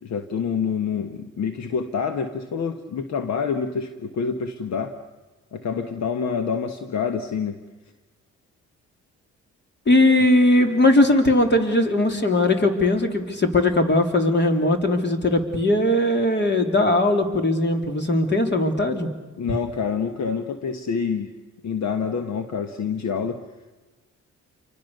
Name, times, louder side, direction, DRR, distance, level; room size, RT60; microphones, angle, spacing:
voice 1, 0.0-4.9 5.5-7.6 19.4-21.3 21.6-23.4, left 6 dB, 65° left, 8 dB, 1.5 m, -27 dB
voice 2, 9.9-19.1, left 1 dB, 35° left, 5 dB, 3.4 m, -19 dB
29.0 x 24.0 x 6.7 m, 1.2 s
cardioid pair, 90°, 30 cm